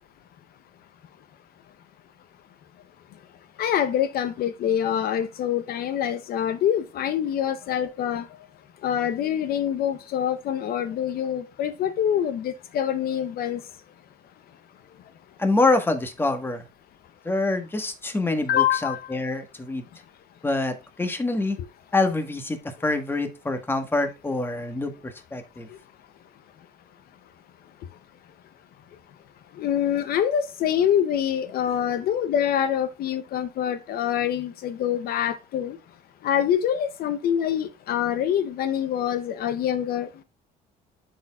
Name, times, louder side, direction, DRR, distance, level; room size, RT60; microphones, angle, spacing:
voice 1, 3.6-8.3 8.8-13.6 18.5-19.1 29.6-35.8 36.2-40.1, left 9 dB, 65° left, 0.6 m, -25 dB
voice 2, 15.4-16.6 17.2-19.8 20.4-21.6 21.9-25.7, left 2 dB, 15° left, 1.2 m, -26 dB
11.5 x 4.3 x 2.3 m
cardioid pair, 110°, 17 cm